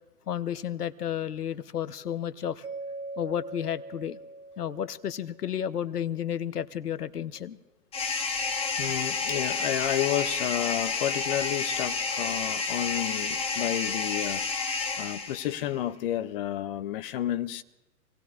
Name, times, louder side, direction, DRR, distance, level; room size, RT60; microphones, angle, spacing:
voice 1, 0.3-2.7 3.2-4.2 4.6-7.6, left 9 dB, 80° left, 0.8 m, -32 dB
Mallet percussion, 2.6-5.6, right 2 dB, 75° right, 2.8 m, -41 dB
sound 1, 7.9-15.7, left 4 dB, 15° left, 1.1 m, -30 dB
voice 2, 8.8-17.6, left 12 dB, 35° left, 0.6 m, -31 dB
27.0 x 18.5 x 2.4 m
figure-of-eight pair, 115°, 46 cm